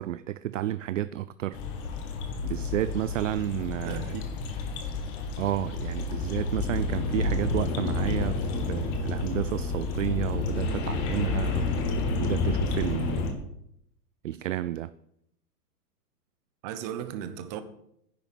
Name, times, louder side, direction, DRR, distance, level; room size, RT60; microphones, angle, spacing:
voice 1, 0.0-1.6 2.4-4.1 5.4-11.7 12.2-13.3 14.2-14.9, right 13 dB, 55° right, 0.5 m, -31 dB
sound 1, 1.5-13.3, left 3 dB, 10° left, 0.5 m, -30 dB
voice 2, 3.8-4.3 16.6-17.6, right 10 dB, 25° right, 0.9 m, -36 dB
10.5 x 7.0 x 9.1 m
hypercardioid pair, 155°, 49 cm